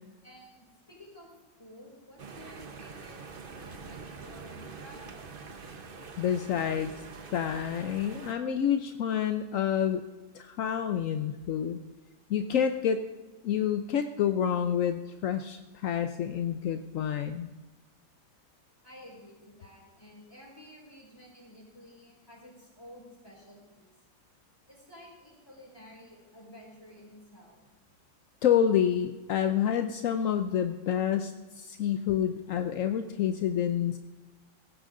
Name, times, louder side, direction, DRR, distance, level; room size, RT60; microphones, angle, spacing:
voice 1, 0.2-1.3 1.6-5.3 18.8-23.8 24.7-27.6, equal, 10° left, -3 dB, 4.7 m, -52 dB
sound 1, 2.2-8.3, right 4 dB, 40° right, 0.9 m, -45 dB
voice 2, 6.2-6.9 7.3-10.0 10.3-11.8 12.3-13.0 13.4-17.5 28.4-34.0, left 9 dB, 65° left, 9 dB, 0.8 m, -28 dB
17.0 x 14.5 x 3.8 m, 1.2 s
omnidirectional pair, 2.0 m